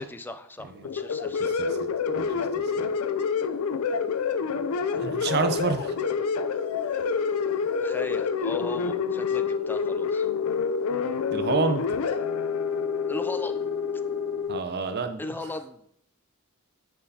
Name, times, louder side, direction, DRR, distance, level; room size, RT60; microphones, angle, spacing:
voice 1, 0.0-1.6 7.8-10.3 13.1-13.8 15.2-15.9, left 2 dB, 10° left, 9 dB, 0.3 m, -37 dB
sound 1, 0.8-14.6, left 6 dB, 80° left, 0.4 m, -27 dB
voice 2, 1.4-1.9 2.1-2.7 5.0-6.0 11.3-11.8 14.5-15.5, right 4 dB, 50° right, 7 dB, 0.6 m, -29 dB
sound 2, 2.0-14.4, right 2 dB, 35° left, 1.9 m, -45 dB
9.8 x 4.6 x 2.8 m, 0.75 s
head